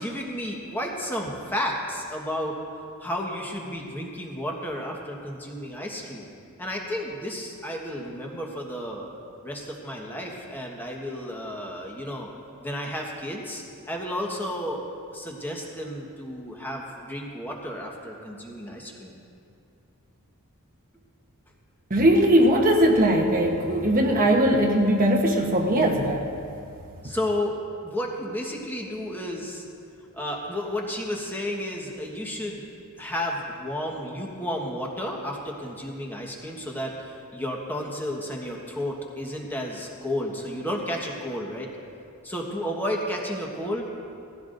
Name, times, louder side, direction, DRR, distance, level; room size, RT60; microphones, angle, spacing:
voice 1, 0.0-2.6 3.0-6.3 6.6-9.1 9.4-12.3 12.6-14.8 15.1-19.1 27.0-27.6 27.8-29.6 30.2-32.7 33.0-41.7 42.2-43.9, left 1 dB, 10° left, -1 dB, 1.3 m, -32 dB
voice 2, 21.9-26.3, right 1 dB, 40° right, 1 dB, 1.1 m, -20 dB
18.0 x 15.5 x 2.6 m, 2.5 s
head